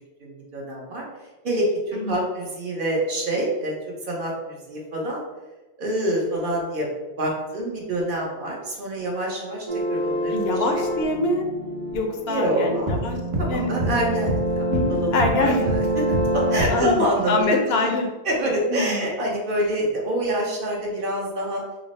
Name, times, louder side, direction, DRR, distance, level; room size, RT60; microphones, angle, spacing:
voice 1, 0.2-1.1 1.4-3.7 4.1-5.2 5.8-6.9 7.2-10.4 12.3-13.1 13.4-16.0 16.3-17.9 18.2-21.6, right 1 dB, 55° right, -2 dB, 0.9 m, -26 dB
sound 1, 9.7-16.9, right 1 dB, 40° right, 0.5 m, -25 dB
voice 2, 10.3-11.4 11.9-13.2 13.5-13.9 14.7-15.6 16.7-18.1 18.7-19.1, left 2 dB, 70° left, 3 dB, 0.8 m, -25 dB
4.1 x 2.0 x 4.0 m, 1.1 s
omnidirectional pair, 1.1 m